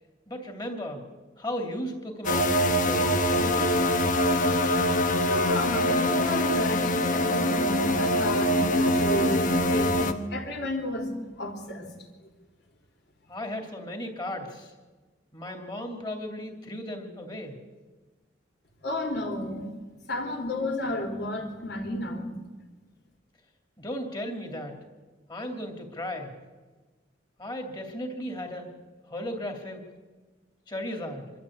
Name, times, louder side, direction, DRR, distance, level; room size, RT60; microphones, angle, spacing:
voice 1, 0.3-1.0 1.4-3.8 13.3-14.7 15.3-17.6 23.8-24.8 25.3-26.3 27.4-28.7 29.1-29.8 30.7-31.3, left 1 dB, 25° left, 4 dB, 2.9 m, -35 dB
sound 1, 2.2-10.1, left 1 dB, 45° left, 1.2 m, -24 dB
voice 2, 5.3-11.9 18.8-19.7 20.1-22.3, left 1 dB, 65° left, 3 dB, 3.6 m, -32 dB
25.5 x 13.0 x 8.7 m, 1.3 s
head